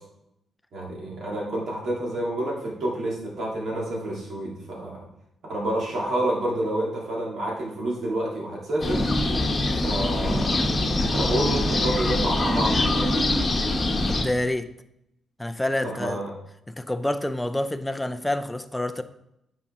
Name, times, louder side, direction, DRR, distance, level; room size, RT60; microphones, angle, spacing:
voice 1, 0.7-5.0 5.5-9.0 9.8-10.7 11.1-13.1 15.8-16.3, right 1 dB, 60° right, 3.1 m, -28 dB
sound 1, 8.8-14.2, left 2 dB, 25° left, 1.2 m, -23 dB
voice 2, 14.1-14.7 15.4-16.2 16.7-19.0, left 1 dB, 5° left, 0.5 m, -27 dB
9.4 x 5.7 x 3.7 m
cardioid pair, 135°, 0 cm